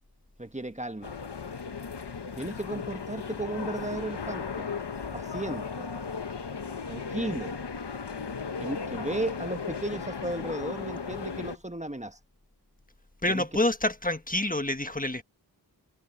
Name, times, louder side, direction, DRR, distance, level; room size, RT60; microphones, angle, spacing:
voice 1, 0.4-1.1 2.4-4.7 5.1-5.9 6.9-7.6 8.6-12.2 13.3-13.4, right 2 dB, 15° right, 1.1 m, -35 dB
sound 1, 1.0-11.6, left 5 dB, 85° left, 1.2 m, -36 dB
voice 2, 13.2-15.2, left 1 dB, 20° left, 1.4 m, -27 dB
wide cardioid pair, 60°, 40 cm